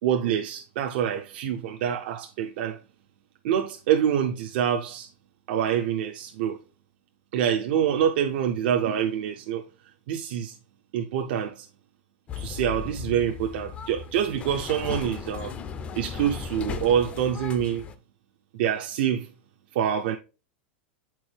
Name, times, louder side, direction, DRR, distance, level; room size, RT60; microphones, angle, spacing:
voice 1, 0.0-2.8 3.4-5.1 5.5-6.6 7.3-9.6 10.1-10.5 10.9-11.7 12.4-15.5 16.0-17.8 18.6-19.3 19.7-20.2, right 9 dB, 60° right, 0.5 m, -26 dB
sound 1, 12.3-17.9, left 6 dB, 20° left, 0.4 m, -36 dB
7.7 x 4.5 x 3.2 m
supercardioid pair, 155°, 6 cm